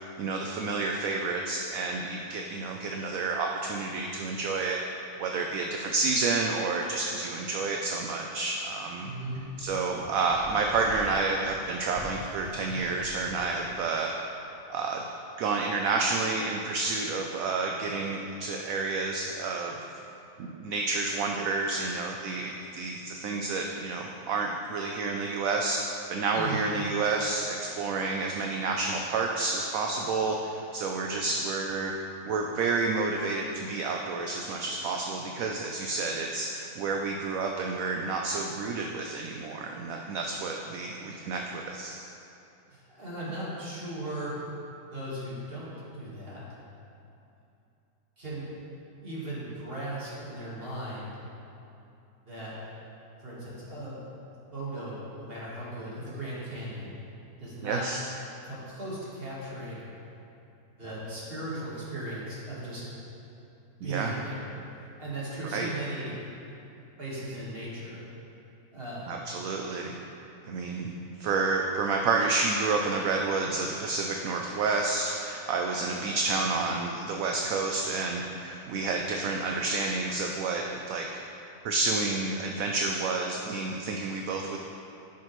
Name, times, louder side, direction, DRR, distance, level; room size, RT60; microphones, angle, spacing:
voice 1, 0.2-4.8 5.2-9.1 9.6-14.1 14.7-15.0 15.4-19.8 20.4-25.8 26.1-31.9 32.2-42.0 57.6-58.0 63.8-64.1 65.5-65.7 69.1-70.0 70.4-81.1 81.6-84.6, right 3 dB, 70° right, 1 dB, 0.9 m, -30 dB
voice 2, 9.0-9.5 26.3-26.7 42.7-44.4 44.9-46.4 48.2-48.5 49.0-51.2 52.3-52.6 53.2-54.0 54.5-57.0 57.4-57.9 58.4-59.8 60.8-62.8 63.8-64.5 65.0-66.2 67.0-68.0 68.7-69.1 70.9-71.0, right 1 dB, 35° right, -8 dB, 1.8 m, -37 dB
sound 1, 9.3-13.6, left 4 dB, 80° left, 0.4 m, -45 dB
10.0 x 5.9 x 3.1 m, 2.7 s
omnidirectional pair, 1.7 m